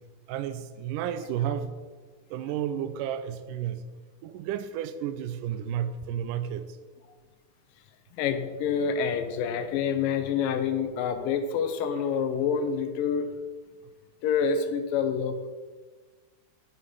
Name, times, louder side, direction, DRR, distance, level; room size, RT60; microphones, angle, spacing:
voice 1, 0.3-1.7 2.3-3.8 4.2-6.7, right 10 dB, 80° right, 9 dB, 2.1 m, -32 dB
voice 2, 8.2-13.3 14.2-15.5, left 6 dB, 85° left, 8 dB, 2.6 m, -27 dB
10.0 x 8.9 x 5.5 m, 1.4 s
omnidirectional pair, 3.8 m